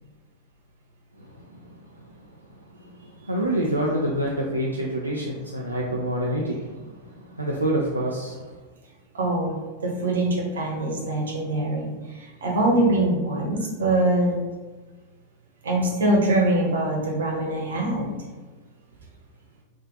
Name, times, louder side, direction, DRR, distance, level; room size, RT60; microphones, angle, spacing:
voice 1, 3.2-6.7 7.4-8.4, right 1 dB, 85° right, -3 dB, 0.4 m, -26 dB
voice 2, 9.1-11.9 12.1-14.3 15.6-18.1, right 1 dB, 65° right, -2 dB, 1.0 m, -23 dB
3.7 x 2.4 x 3.8 m, 1.3 s
figure-of-eight pair, 90°, 0 cm